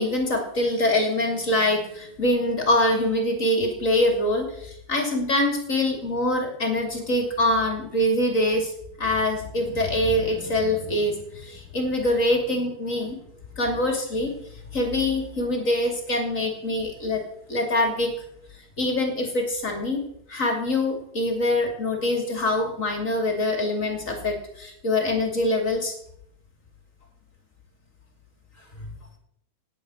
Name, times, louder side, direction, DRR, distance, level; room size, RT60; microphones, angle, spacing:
voice 1, 0.0-8.7 9.0-13.2 13.6-14.3 14.7-17.2 17.5-18.1 18.8-20.0 20.3-25.9, left 1 dB, 25° left, 3 dB, 2.1 m, -24 dB
17.0 x 9.9 x 6.3 m, 0.73 s
omnidirectional pair, 5.0 m